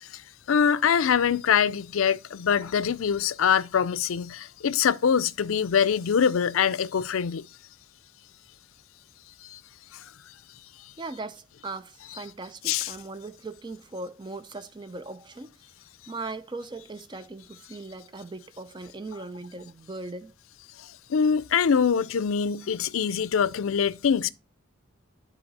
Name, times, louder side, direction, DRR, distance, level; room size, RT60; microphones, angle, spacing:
voice 1, 0.5-7.4 9.4-9.6 9.9-10.0 12.6-12.9 20.8-24.3, left 7 dB, 85° left, 0.4 m, -24 dB
voice 2, 11.0-15.6 16.1-20.3, right 3 dB, 20° right, 0.4 m, -39 dB
10.5 x 4.0 x 4.0 m
head